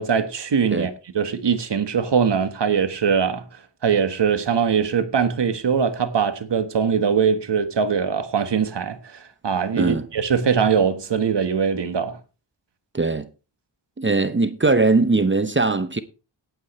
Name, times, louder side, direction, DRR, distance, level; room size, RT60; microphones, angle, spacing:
voice 1, 0.0-3.4 3.8-12.2, right 6 dB, 65° right, 1.5 m, -22 dB
voice 2, 12.9-13.3 14.0-16.0, right 3 dB, 25° right, 0.9 m, -20 dB
17.0 x 9.0 x 3.2 m
wide cardioid pair, 70°, 45 cm